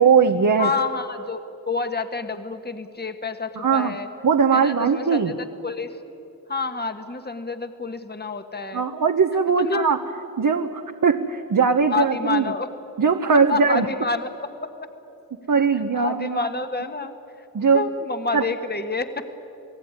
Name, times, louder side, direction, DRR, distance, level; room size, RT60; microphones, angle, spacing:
voice 1, 0.0-0.7 3.6-3.9 4.2-5.3 8.7-10.0 10.4-12.5 13.0-13.9 15.5-16.5 17.5-17.8 18.3-18.4, right 5 dB, 60° right, 5 dB, 1.2 m, -20 dB
voice 2, 0.6-1.4 1.7-4.1 4.5-5.9 6.5-8.8 9.6-9.9 11.9-12.7 13.3-14.7 15.9-17.1 17.7-19.3, left 4 dB, 25° left, 8 dB, 1.5 m, -28 dB
29.0 x 18.5 x 9.8 m, 2.9 s
cardioid pair, 65°, 36 cm